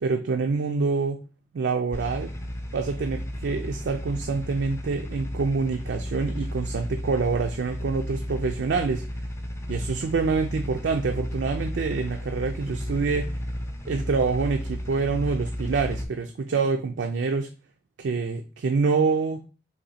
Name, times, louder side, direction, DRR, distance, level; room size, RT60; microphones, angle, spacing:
voice 1, 0.0-1.2 1.5-2.3 2.7-9.0 9.7-13.3 13.9-17.5 18.0-19.4, right 4 dB, 75° right, 5 dB, 0.4 m, -26 dB
sound 1, 1.9-16.0, equal, 15° left, 0.5 m, -33 dB
3.9 x 3.0 x 4.1 m, 0.36 s
head